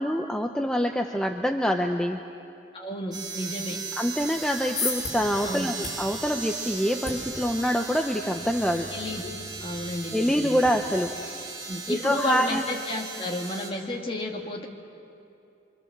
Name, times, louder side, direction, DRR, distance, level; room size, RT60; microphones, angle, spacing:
voice 1, 0.0-2.2 3.9-8.9 10.1-11.1 11.9-12.6, equal, 5° left, 3 dB, 0.7 m, -25 dB
voice 2, 2.7-3.8 5.4-5.8 8.9-9.3 9.6-10.5 11.7-14.7, left 1 dB, 30° left, 0 dB, 2.4 m, -32 dB
sound 1, 3.1-13.7, right 4 dB, 25° right, 3.0 m, -37 dB
sound 2, 4.4-10.7, left 3 dB, 50° left, 6.2 m, -38 dB
26.0 x 25.5 x 7.4 m, 2.7 s
head